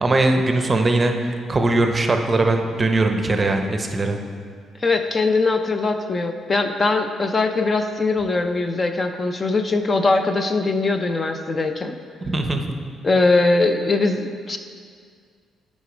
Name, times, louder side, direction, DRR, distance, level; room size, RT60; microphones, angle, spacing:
voice 1, 0.0-4.2 12.3-12.8, right 2 dB, 25° right, 5 dB, 0.7 m, -20 dB
voice 2, 4.8-12.0 13.0-14.6, left 3 dB, 35° left, 7 dB, 0.5 m, -21 dB
8.2 x 5.2 x 5.0 m, 2.1 s
cardioid pair, 90°, 0 cm